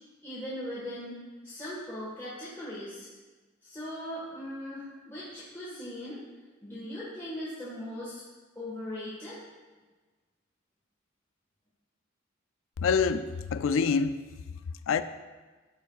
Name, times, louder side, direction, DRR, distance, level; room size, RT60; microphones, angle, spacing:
voice 1, 0.2-3.1 3.6-6.2 6.6-8.2 8.5-9.4, left 1 dB, 15° left, -10 dB, 1.5 m, -39 dB
voice 2, 12.8-14.2 14.9-15.0, left 5 dB, 85° left, 12 dB, 0.3 m, -26 dB
11.5 x 4.6 x 2.4 m, 1.3 s
head